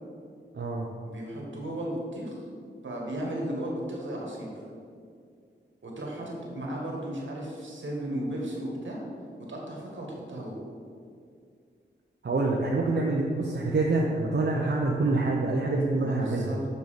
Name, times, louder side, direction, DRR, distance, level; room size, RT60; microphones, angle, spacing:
voice 1, 0.5-0.9 12.2-16.5, right 3 dB, 70° right, -2 dB, 0.9 m, -26 dB
voice 2, 1.0-2.4 2.8-4.5 5.8-9.1 9.5-10.6 15.9-16.6, right 1 dB, 85° right, -2 dB, 2.0 m, -35 dB
6.7 x 6.7 x 5.2 m, 2.2 s
wide cardioid pair, 85°, 19 cm